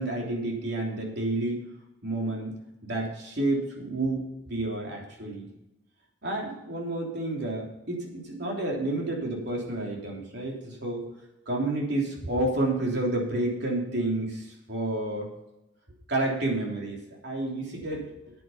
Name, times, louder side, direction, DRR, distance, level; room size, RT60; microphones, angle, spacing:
voice 1, 0.0-1.6 2.0-2.6 2.8-5.5 6.2-11.0 11.5-15.3 16.1-17.0 17.2-18.1, right 2 dB, 60° right, -1 dB, 3.3 m, -30 dB
9.9 x 9.2 x 5.7 m, 0.93 s
head